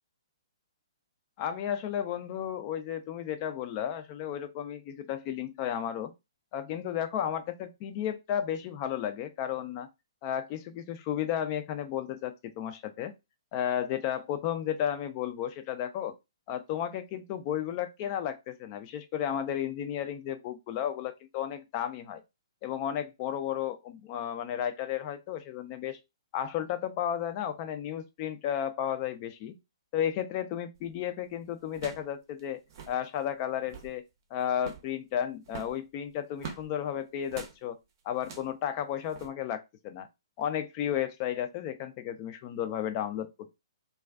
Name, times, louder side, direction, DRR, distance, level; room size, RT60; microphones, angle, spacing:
voice 1, 1.4-6.1 6.5-9.9 10.2-13.1 13.5-16.1 16.5-22.2 22.6-26.0 26.3-29.6 29.9-32.6 32.9-34.0 34.3-37.8 38.1-40.1 40.4-43.6, left 10 dB, 35° left, 0.4 m, -33 dB
sound 1, 30.8-31.0 31.7-32.1 32.4-32.5 32.7-33.0 33.5-34.0 34.6-34.9 35.5-36.7 37.3-37.6 38.2-38.6 39.1-39.3, right 6 dB, 45° right, 0.6 m, -44 dB
2.3 x 2.3 x 2.3 m
figure-of-eight pair, 130°, 3 cm